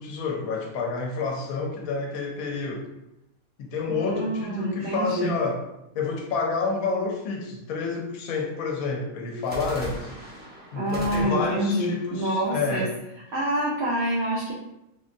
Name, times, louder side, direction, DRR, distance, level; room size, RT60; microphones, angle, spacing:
voice 1, 0.0-2.9 3.6-5.6 5.9-10.1 10.7-12.9, left 4 dB, 80° left, 1 dB, 1.0 m, -29 dB
sound 1, 1.2-2.7 9.4-13.4, right 1 dB, 10° right, 0.4 m, -41 dB
voice 2, 3.9-5.3 10.8-12.9 13.3-14.5, right 1 dB, 60° right, -5 dB, 0.8 m, -27 dB
3.7 x 2.1 x 2.5 m, 0.89 s
omnidirectional pair, 1.5 m